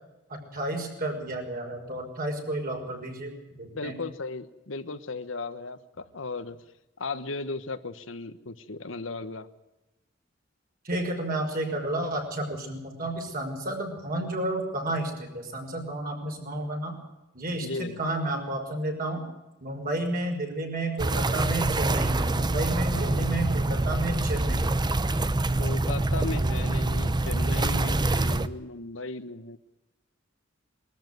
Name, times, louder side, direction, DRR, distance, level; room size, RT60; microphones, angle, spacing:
voice 1, 0.3-3.3 3.6-4.0 10.8-17.0 17.3-19.2 19.6-24.8, right 1 dB, 50° right, 2 dB, 5.8 m, -31 dB
voice 2, 3.7-6.6 7.0-9.5 17.6-18.0 22.9-23.3 25.6-29.6, left 3 dB, 75° left, 10 dB, 1.3 m, -36 dB
sound 1, 21.0-28.5, right 2 dB, 20° right, 0.8 m, -25 dB
22.0 x 13.5 x 9.3 m, 0.99 s
head